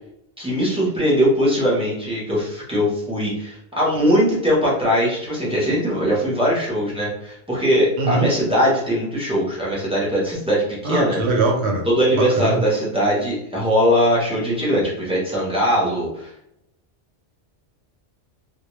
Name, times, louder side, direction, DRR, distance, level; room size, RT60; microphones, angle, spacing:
voice 1, 0.4-11.2 11.9-16.3, equal, 5° right, -7 dB, 0.5 m, -20 dB
voice 2, 8.0-8.3 10.8-11.8 12.1-12.6, right 3 dB, 65° right, 1 dB, 0.9 m, -21 dB
2.2 x 2.1 x 3.0 m, 0.78 s
omnidirectional pair, 1.2 m